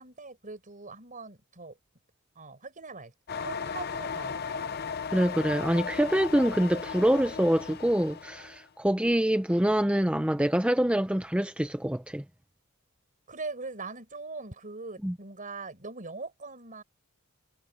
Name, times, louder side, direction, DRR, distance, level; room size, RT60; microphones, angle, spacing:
voice 1, 0.0-1.8 2.4-4.6 13.3-16.8, right 3 dB, 40° right, 5.1 m, -41 dB
sound 1, 3.3-8.6, left 6 dB, 45° left, 0.7 m, -36 dB
voice 2, 5.1-12.2 15.0-15.1, right 1 dB, 5° right, 0.7 m, -25 dB
head